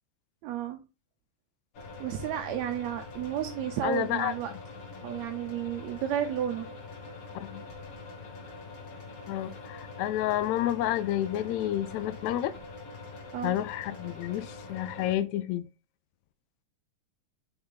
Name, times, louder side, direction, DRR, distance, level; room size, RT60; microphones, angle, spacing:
voice 1, 0.4-0.8 2.0-4.5 5.0-6.7 13.3-13.6, right 10 dB, 75° right, 1.7 m, -32 dB
sound 1, 1.7-15.1, left 4 dB, 50° left, 2.3 m, -44 dB
voice 2, 3.8-4.3 7.4-7.6 9.3-12.5 13.4-15.6, left 13 dB, 80° left, 1.7 m, -30 dB
5.6 x 5.4 x 3.9 m
omnidirectional pair, 3.7 m